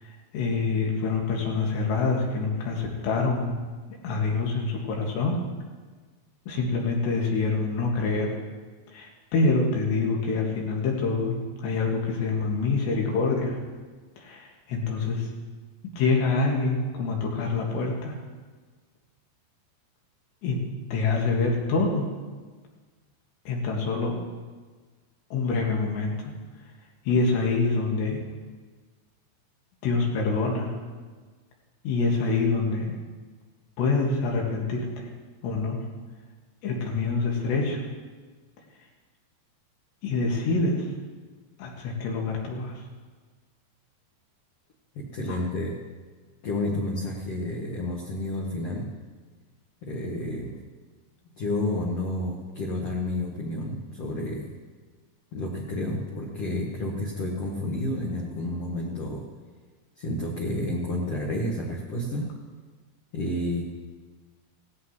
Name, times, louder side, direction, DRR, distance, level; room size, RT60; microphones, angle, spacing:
voice 1, 0.3-3.5 4.0-5.4 6.5-8.3 8.9-13.6 14.2-15.3 16.0-18.2 20.4-20.6 20.9-22.1 23.5-24.2 25.3-26.3 27.1-28.2 29.8-30.7 31.8-32.9 33.8-35.1 35.4-35.8 36.6-37.8 40.0-40.9 41.6-42.7 45.3-45.4, left 3 dB, 90° left, -1 dB, 4.1 m, -26 dB
voice 2, 45.1-45.7 46.4-48.8 49.8-50.5 51.4-54.5 55.3-59.2 60.0-62.3 63.1-63.6, left 1 dB, 65° left, -2 dB, 1.5 m, -30 dB
17.0 x 15.0 x 3.1 m, 1.4 s
omnidirectional pair, 4.8 m